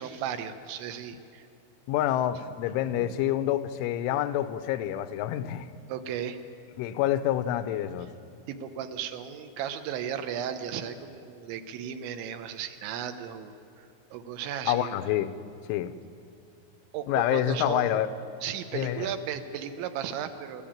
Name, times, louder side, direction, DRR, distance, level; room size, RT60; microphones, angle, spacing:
voice 1, 0.0-1.5 2.9-3.1 5.9-6.4 8.5-14.9 16.9-18.0 18.4-20.6, right 8 dB, 80° right, 9 dB, 3.2 m, -35 dB
voice 2, 1.9-5.7 6.8-8.1 14.7-15.3 15.7-15.9 17.1-18.1 18.7-19.1, left 12 dB, 90° left, 11 dB, 3.3 m, -27 dB
24.5 x 14.0 x 8.8 m, 2.7 s
omnidirectional pair, 5.5 m